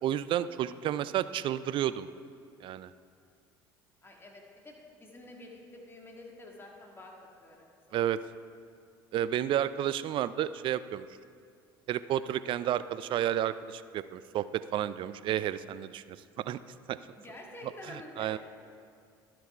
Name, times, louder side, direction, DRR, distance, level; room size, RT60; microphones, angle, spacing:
voice 1, 0.0-2.1 2.6-2.9 7.9-8.2 9.1-11.1 11.9-14.5 14.7-16.2 16.5-16.6 16.9-17.0 18.2-18.4, right 11 dB, 50° right, 15 dB, 0.4 m, -31 dB
voice 2, 4.0-7.1 7.4-8.0 17.2-18.4, left 1 dB, 20° left, -1 dB, 1.8 m, -49 dB
11.5 x 6.0 x 4.4 m, 2.3 s
hypercardioid pair, 65°, 11 cm